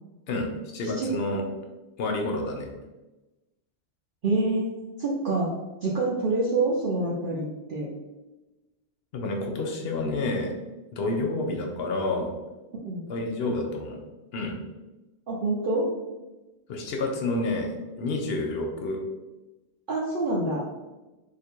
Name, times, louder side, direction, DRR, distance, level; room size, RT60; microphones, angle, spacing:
voice 1, 0.3-1.4 2.0-2.7 9.1-10.5 10.9-12.3 13.1-14.0 14.3-14.6 16.7-19.0, left 2 dB, 65° left, 2 dB, 0.8 m, -29 dB
voice 2, 4.2-4.7 5.0-5.5 5.8-7.9 12.8-13.0 15.3-15.9 19.9-20.6, right 2 dB, 55° right, -4 dB, 0.7 m, -26 dB
2.9 x 2.5 x 4.3 m, 1.1 s
omnidirectional pair, 1.1 m